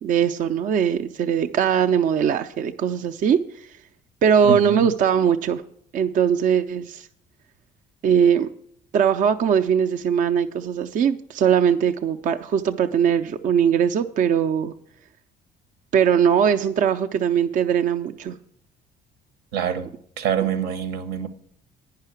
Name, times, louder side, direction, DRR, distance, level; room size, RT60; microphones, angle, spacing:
voice 1, 0.0-3.7 4.2-5.6 5.9-7.1 8.0-8.5 8.9-14.7 15.9-18.4 20.4-20.5, right 8 dB, 55° right, 0.5 m, -20 dB
voice 2, 4.5-4.9 19.5-19.9 20.2-21.3, right 8 dB, 85° right, 1.0 m, -25 dB
9.7 x 5.7 x 8.2 m
cardioid pair, 110°, 17 cm